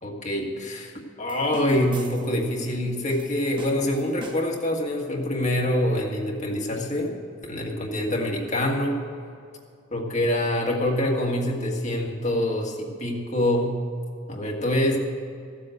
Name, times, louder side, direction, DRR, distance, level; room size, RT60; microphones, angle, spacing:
voice 1, 0.0-7.2 7.5-9.0 9.9-13.8 14.3-15.0, left 1 dB, 40° left, -1 dB, 1.8 m, -25 dB
sound 1, 1.3-2.5 3.1-4.7, right 1 dB, 25° right, 1.2 m, -43 dB
15.0 x 7.7 x 7.9 m, 2.4 s
head